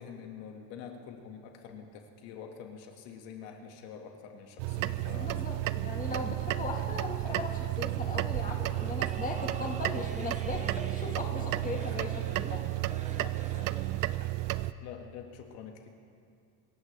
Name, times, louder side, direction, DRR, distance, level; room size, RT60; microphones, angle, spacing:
voice 1, 0.0-5.3 6.1-6.3 8.6-8.8 11.3-11.5 12.0-12.1 13.2-13.7 14.8-15.9, left 7 dB, 80° left, 3 dB, 1.9 m, -46 dB
sound 1, 4.6-14.7, right 17 dB, 50° right, 0.5 m, -32 dB
voice 2, 5.1-12.6, left 3 dB, 20° left, 1 dB, 1.6 m, -38 dB
sound 2, 8.4-14.2, right 4 dB, 15° right, 0.7 m, -47 dB
25.5 x 14.5 x 3.4 m, 2.3 s
cardioid pair, 150°, 44 cm